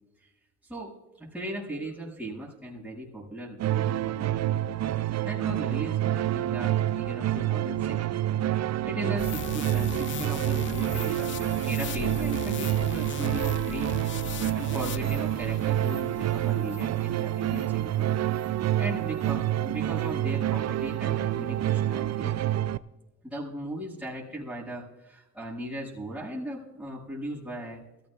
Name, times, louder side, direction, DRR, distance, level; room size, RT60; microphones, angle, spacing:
voice 1, 0.6-4.6 4.9-8.0 8.4-13.9 14.5-18.1 18.4-22.3 23.2-27.8, right 1 dB, 5° right, -9 dB, 6.5 m, -38 dB
sound 1, 3.6-22.8, right 13 dB, 60° right, 0.6 m, -28 dB
sound 2, 9.2-17.8 18.3-18.5, left 10 dB, 40° left, 0.5 m, -39 dB
23.5 x 16.5 x 2.5 m, 0.99 s
cardioid pair, 90°, 30 cm